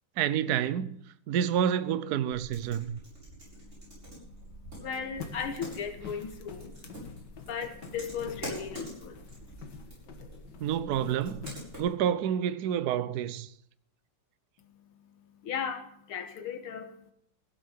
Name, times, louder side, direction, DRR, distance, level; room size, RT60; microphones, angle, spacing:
voice 1, 0.2-1.0 1.3-3.0 10.6-11.5 11.8-13.5, right 9 dB, 65° right, 1.0 m, -28 dB
sound 1, 2.3-11.8, right 1 dB, 30° right, 8.0 m, -46 dB
voice 2, 3.5-9.8 14.6-17.1, left 6 dB, 75° left, 2.1 m, -38 dB
sound 2, 5.2-12.0, left 5 dB, 55° left, 2.0 m, -47 dB
16.0 x 8.6 x 7.5 m
omnidirectional pair, 2.4 m